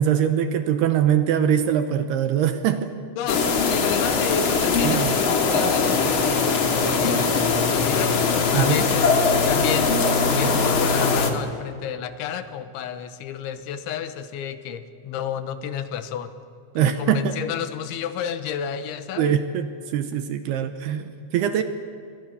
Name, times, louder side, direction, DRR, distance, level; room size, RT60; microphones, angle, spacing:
voice 1, 0.0-3.0 4.8-5.2 8.5-8.9 16.8-17.4 19.2-21.6, right 9 dB, 75° right, 9 dB, 2.6 m, -22 dB
voice 2, 3.2-9.1 9.5-10.0 10.2-16.3 16.7-19.4, left 9 dB, 80° left, 11 dB, 3.4 m, -31 dB
sound 1, 3.3-11.3, left 4 dB, 55° left, 1.5 m, -21 dB
29.0 x 23.0 x 7.0 m, 2.4 s
omnidirectional pair, 5.4 m